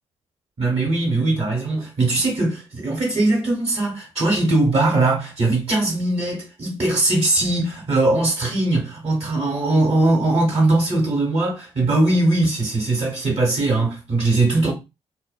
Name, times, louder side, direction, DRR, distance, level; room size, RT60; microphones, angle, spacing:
voice 1, 0.6-14.7, right 2 dB, 50° right, 1.3 m, -20 dB
2.4 x 2.2 x 2.4 m
hypercardioid pair, 45°, 13 cm